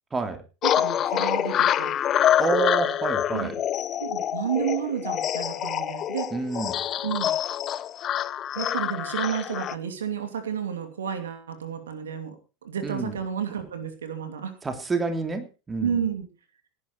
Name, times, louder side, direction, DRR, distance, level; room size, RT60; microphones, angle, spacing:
voice 1, 0.1-0.4 2.4-3.5 6.3-6.8 12.8-13.2 14.6-16.0, right 4 dB, 20° right, 6 dB, 3.0 m, -28 dB
sound 1, 0.6-9.8, left 10 dB, 40° left, 0.8 m, -26 dB
voice 2, 0.6-2.0 3.3-3.5 4.0-6.3 7.0-7.3 8.5-12.4 12.6-14.6 15.8-16.3, right 8 dB, 75° right, 8 dB, 2.7 m, -31 dB
18.0 x 10.5 x 4.5 m, 0.32 s
figure-of-eight pair, 80°, 0 cm